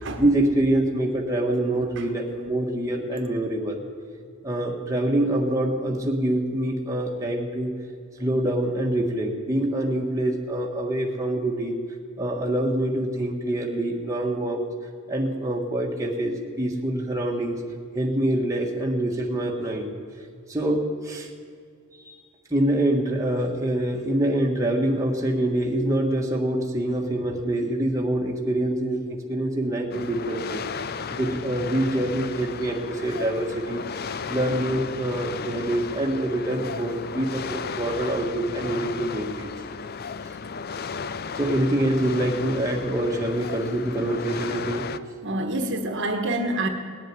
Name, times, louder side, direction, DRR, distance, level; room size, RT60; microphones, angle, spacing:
voice 1, 0.2-3.8 4.4-7.7 8.2-11.8 12.2-14.6 15.1-17.6 17.9-19.9 20.5-21.3 21.9-22.2 22.5-30.6 31.1-33.8 34.3-39.5 41.3-44.9, right 1 dB, 15° right, -1 dB, 1.5 m, -25 dB
sound 1, 29.9-45.0, left 5 dB, 45° left, 0.5 m, -34 dB
voice 2, 45.2-46.7, right 1 dB, 55° right, 4 dB, 1.4 m, -27 dB
19.0 x 7.8 x 9.8 m, 2.2 s
head